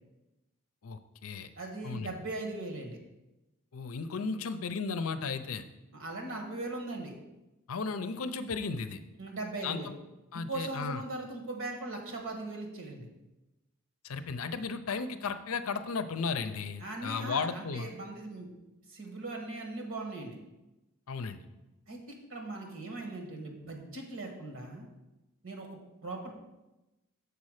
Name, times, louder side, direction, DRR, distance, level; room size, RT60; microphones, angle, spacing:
voice 1, 0.8-1.5 1.8-2.1 3.7-5.6 7.7-9.0 9.6-9.9 10.3-11.0 14.0-17.9 21.1-21.4, left 4 dB, 75° left, 11 dB, 0.5 m, -35 dB
voice 2, 1.6-3.0 5.9-7.1 9.2-9.9 10.3-13.1 16.8-18.5 18.9-20.4 21.9-24.9 25.4-25.7 26.0-26.4, right 2 dB, 65° right, 2 dB, 1.6 m, -39 dB
6.9 x 4.2 x 6.5 m, 1.0 s
head